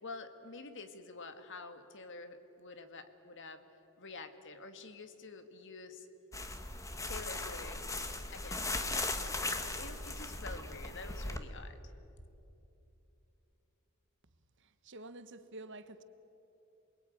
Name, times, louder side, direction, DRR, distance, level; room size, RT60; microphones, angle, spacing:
voice 1, 0.0-3.6 4.0-6.1 7.1-7.9 8.3-11.9, left 3 dB, 60° left, 1.9 m, -48 dB
sound 1, 6.3-11.4, left 2 dB, 15° left, 1.5 m, -38 dB
voice 2, 14.8-16.0, right 2 dB, 55° right, 1.2 m, -48 dB
28.0 x 21.5 x 9.2 m
head